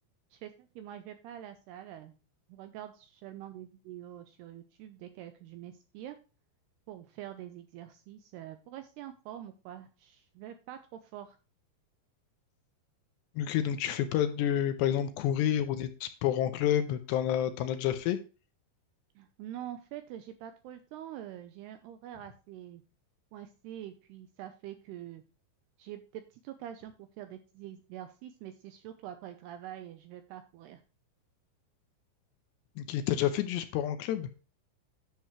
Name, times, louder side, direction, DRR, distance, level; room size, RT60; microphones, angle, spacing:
voice 1, 0.3-2.1 2.5-6.2 6.9-11.4 19.2-22.8 23.3-25.2 25.8-30.8, right 11 dB, 80° right, 9 dB, 2.4 m, -45 dB
voice 2, 13.4-18.2 32.8-34.3, left 10 dB, 75° left, 9 dB, 2.8 m, -29 dB
10.5 x 7.0 x 3.1 m, 0.34 s
omnidirectional pair, 5.4 m